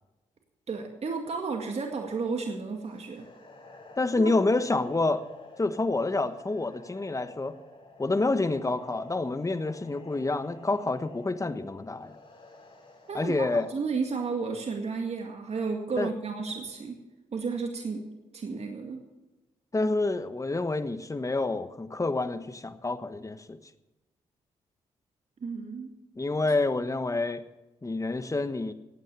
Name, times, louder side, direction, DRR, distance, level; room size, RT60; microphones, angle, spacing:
voice 1, 0.7-3.3 4.2-4.3 13.1-17.0 17.3-18.1 18.3-19.0 25.4-25.9, right 4 dB, 50° right, 3 dB, 2.1 m, -32 dB
sound 1, 2.8-13.9, left 2 dB, 45° left, 5.9 m, -50 dB
voice 2, 4.0-5.3 5.6-7.6 8.0-12.2 13.1-13.7 16.0-16.1 19.7-23.6 26.1-27.4 27.8-28.7, left 2 dB, 25° left, 11 dB, 1.3 m, -28 dB
15.5 x 9.1 x 6.8 m, 1.1 s
supercardioid pair, 55°, 13 cm